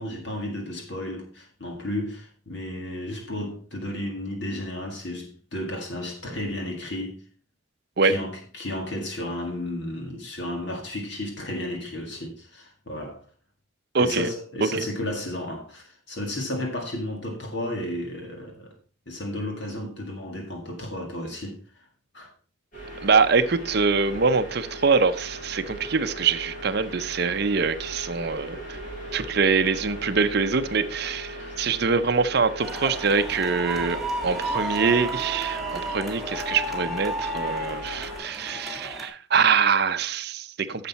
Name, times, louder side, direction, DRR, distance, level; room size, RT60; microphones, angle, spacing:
voice 1, 0.0-7.2 8.0-13.2 14.0-18.7 19.1-21.6 22.1-22.3 31.4-31.6, left 1 dB, 55° left, 1.9 m, -33 dB
voice 2, 13.9-14.3 23.0-28.8 29.1-40.9, right 5 dB, 50° right, 0.6 m, -24 dB
sound 1, 22.7-38.2, right 1 dB, 40° left, 4.7 m, -38 dB
sound 2, 32.6-39.1, right 1 dB, ahead, 1.6 m, -32 dB
10.0 x 6.7 x 4.1 m
head